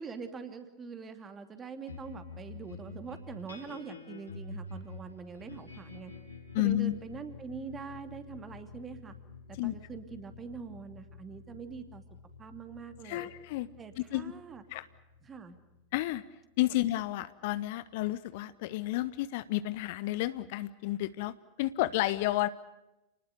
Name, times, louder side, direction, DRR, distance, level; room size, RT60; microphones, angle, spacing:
voice 1, 0.0-6.1 6.6-9.1 9.5-12.0 12.4-13.3 13.8-14.6 15.2-15.6, right 5 dB, 20° right, 8 dB, 2.8 m, -44 dB
sound 1, 1.9-16.6, left 3 dB, 80° left, 5.4 m, -48 dB
voice 2, 6.5-6.9 9.6-9.7 13.0-13.7 14.0-14.3 14.7-14.9 15.9-16.2 16.6-22.5, left 16 dB, 50° left, 15 dB, 0.9 m, -31 dB
29.5 x 20.0 x 6.8 m, 0.93 s
figure-of-eight pair, 90°, 0 cm